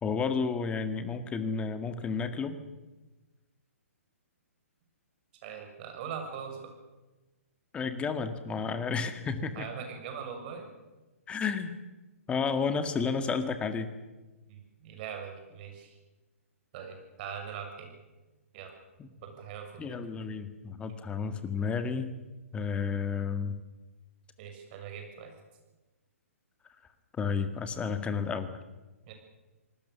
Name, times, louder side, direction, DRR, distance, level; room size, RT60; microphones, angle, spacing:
voice 1, 0.0-2.6 7.7-9.7 11.3-11.8 12.3-13.9 19.0-19.1 19.8-22.2 22.5-23.6 27.2-28.5, left 5 dB, 15° left, 9 dB, 1.9 m, -31 dB
voice 2, 5.4-6.7 9.5-10.7 14.5-16.0 16.7-17.9 18.5-18.7 19.2-20.0 24.4-25.3 29.1-29.2, right 7 dB, 40° right, 4 dB, 6.8 m, -41 dB
27.0 x 19.5 x 7.0 m, 1.1 s
figure-of-eight pair, 130°, 8 cm